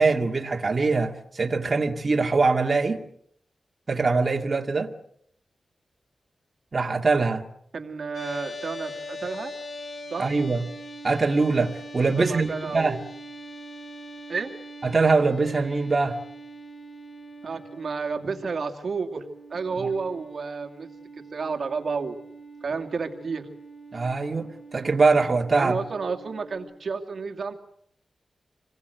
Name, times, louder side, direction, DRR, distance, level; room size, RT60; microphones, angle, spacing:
voice 1, 0.0-3.0 3.9-4.9 6.7-7.4 10.2-10.6 11.0-13.0 14.8-16.2 19.8-19.9 23.9-25.8, right 4 dB, 35° right, 2.2 m, -23 dB
voice 2, 7.7-9.5 10.1-10.3 12.2-13.0 14.3-14.5 17.4-19.2 19.5-20.9 21.3-22.2 22.6-23.5 25.6-27.5, right 4 dB, 60° right, 2.3 m, -31 dB
sound 1, 8.1-26.6, equal, 80° left, 5.0 m, -42 dB
27.0 x 21.5 x 8.0 m
wide cardioid pair, 130°, 0 cm